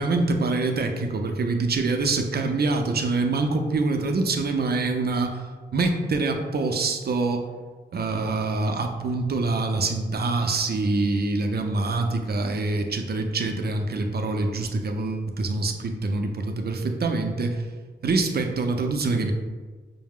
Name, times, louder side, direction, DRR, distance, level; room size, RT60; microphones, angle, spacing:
voice 1, 0.0-5.4 5.7-7.5 7.9-17.6 18.0-19.3, right 3 dB, 55° right, 4 dB, 0.5 m, -25 dB
5.5 x 2.0 x 3.5 m, 1.4 s
wide cardioid pair, 110°, 19 cm